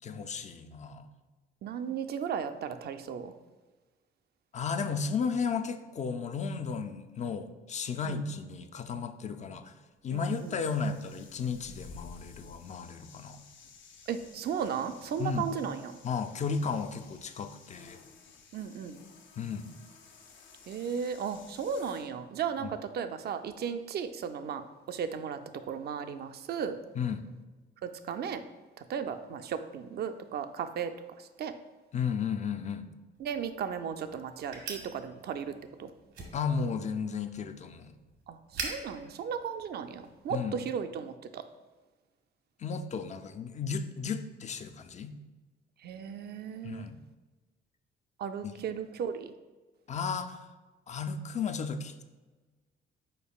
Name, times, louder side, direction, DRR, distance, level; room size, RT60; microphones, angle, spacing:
voice 1, 0.0-1.1 4.5-9.7 10.0-13.4 15.2-15.5 16.0-18.0 19.4-19.7 22.6-22.7 27.0-27.2 31.9-32.9 36.3-37.9 40.3-40.6 42.6-45.1 46.6-47.0 48.4-48.5 49.9-50.4 50.9-52.0, left 5 dB, 35° left, 9 dB, 0.4 m, -34 dB
voice 2, 1.6-3.3 8.0-8.2 10.1-10.5 14.1-16.0 18.5-19.0 20.7-26.8 27.8-28.4 28.8-31.5 33.2-35.9 38.3-41.5 45.8-46.9 48.2-49.3, right 7 dB, 55° right, 9 dB, 0.4 m, -35 dB
sound 1, 10.1-22.1, left 5 dB, 70° left, 0.7 m, -54 dB
sound 2, 33.1-40.3, right 4 dB, 85° right, 1.2 m, -45 dB
5.3 x 4.3 x 2.3 m, 1.3 s
cardioid pair, 90°, 20 cm